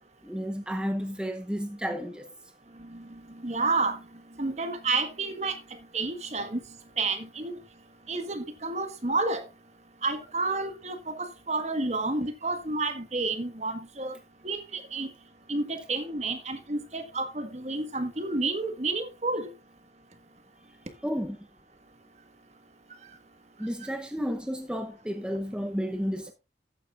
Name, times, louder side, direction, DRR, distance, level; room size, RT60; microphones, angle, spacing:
voice 1, 0.2-2.3 21.0-21.5 23.6-26.3, equal, 5° right, 0.8 m, -32 dB
voice 2, 3.3-4.0 4.4-5.6 5.9-6.6 7.0-7.6 8.1-9.4 10.0-14.1 14.4-15.1 15.5-19.5, right 3 dB, 40° right, 1.5 m, -30 dB
13.5 x 9.7 x 2.5 m
head